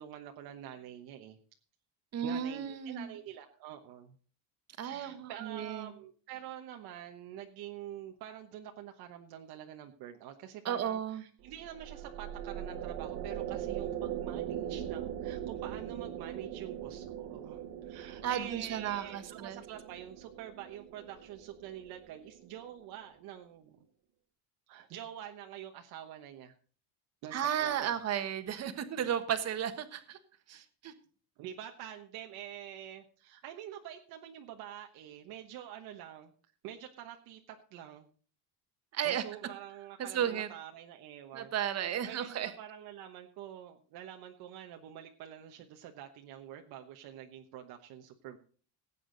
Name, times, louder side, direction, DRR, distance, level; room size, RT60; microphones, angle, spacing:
voice 1, 0.0-1.4 2.2-4.2 4.8-23.8 24.7-26.5 27.2-28.0 31.4-36.3 36.6-38.1 39.0-48.4, right 11 dB, 60° right, 4 dB, 1.2 m, -47 dB
voice 2, 2.1-3.1 4.8-5.9 10.6-11.2 18.2-19.6 27.3-30.2 30.5-30.9 38.9-39.2 40.0-40.5 41.3-42.5, right 9 dB, 40° right, 9 dB, 1.4 m, -34 dB
sound 1, 11.4-22.9, right 10 dB, 85° right, 1.9 m, -41 dB
17.5 x 8.6 x 3.9 m, 0.42 s
cardioid pair, 165°, 42 cm